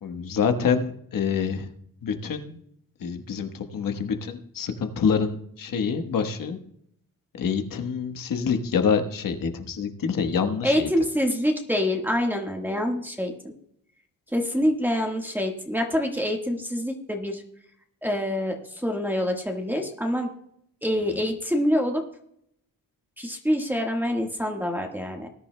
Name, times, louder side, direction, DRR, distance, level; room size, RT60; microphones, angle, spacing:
voice 1, 0.0-1.7 2.0-2.6 3.0-6.6 7.4-10.9, left 6 dB, 70° left, 7 dB, 1.3 m, -26 dB
voice 2, 10.6-13.5 14.3-17.4 18.0-20.3 20.8-22.0 23.2-25.3, equal, 5° right, 2 dB, 1.5 m, -26 dB
20.0 x 10.5 x 2.2 m, 0.73 s
cardioid pair, 105°, 35 cm